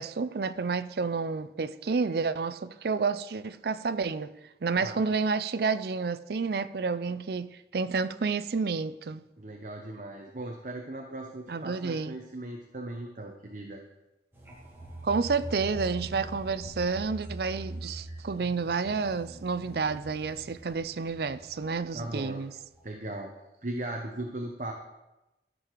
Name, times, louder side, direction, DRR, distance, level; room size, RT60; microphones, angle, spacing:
voice 1, 0.0-4.3 4.6-9.2 11.5-12.2 15.0-22.5, right 4 dB, 60° right, 0.5 m, -30 dB
voice 2, 9.4-13.8 21.9-22.4 22.8-23.3 23.6-24.7, right 1 dB, 45° right, 0.9 m, -38 dB
sound 1, 14.3-22.2 22.6-22.8, right 1 dB, 15° right, 2.5 m, -43 dB
13.5 x 6.7 x 4.6 m
head